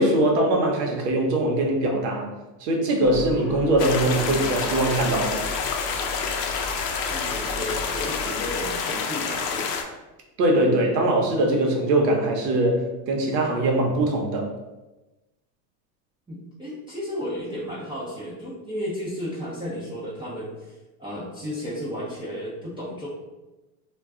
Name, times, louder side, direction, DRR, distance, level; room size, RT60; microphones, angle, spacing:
voice 1, 0.0-2.3 2.6-5.4 10.4-14.5, right 1 dB, 80° right, 1 dB, 0.9 m, -22 dB
Gull seagull, 3.0-8.9, left 2 dB, 35° left, 0.6 m, -38 dB
sound 1, 3.8-9.8, left 5 dB, 85° left, 0.6 m, -28 dB
voice 2, 7.1-9.7 16.3-23.1, equal, 10° right, -8 dB, 0.5 m, -33 dB
2.3 x 2.2 x 3.6 m, 1.1 s
supercardioid pair, 115°, 48 cm